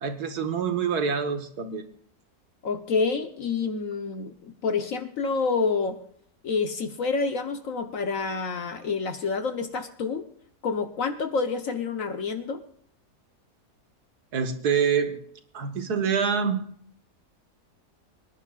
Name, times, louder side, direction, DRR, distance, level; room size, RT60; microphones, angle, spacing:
voice 1, 0.0-1.9 14.3-15.2 15.5-16.6, right 6 dB, 75° right, 8 dB, 2.0 m, -26 dB
voice 2, 2.6-6.0 6.4-10.3 10.6-12.6, left 4 dB, 60° left, 7 dB, 1.4 m, -28 dB
25.0 x 11.0 x 2.4 m, 0.63 s
omnidirectional pair, 1.7 m